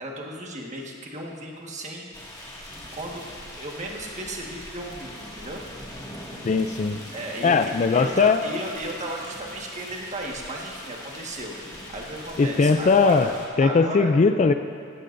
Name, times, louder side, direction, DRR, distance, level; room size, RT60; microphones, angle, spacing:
voice 1, 0.0-2.0 2.9-5.6 7.1-11.6 11.9-13.3 13.6-14.1, right 1 dB, 35° right, -1 dB, 1.5 m, -34 dB
sound 1, 2.1-13.5, left 1 dB, 20° left, 2.0 m, -41 dB
voice 2, 6.4-7.0 7.4-8.4 12.4-13.3 13.6-14.5, left 4 dB, 35° left, 9 dB, 0.3 m, -19 dB
16.5 x 14.5 x 2.6 m, 2.2 s
head